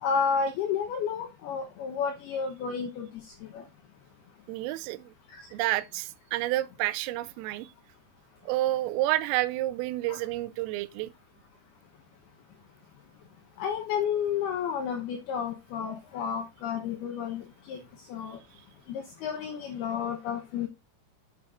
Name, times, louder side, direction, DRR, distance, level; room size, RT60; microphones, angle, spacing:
voice 1, 0.0-3.6 5.3-5.5 10.1-10.2 13.6-17.8 18.1-18.4 18.9-20.7, left 6 dB, 80° left, 2.3 m, -31 dB
voice 2, 4.5-5.1 5.5-7.7 8.5-11.1, right 16 dB, 90° right, 3.3 m, -29 dB
10.5 x 7.8 x 2.5 m
omnidirectional pair, 5.8 m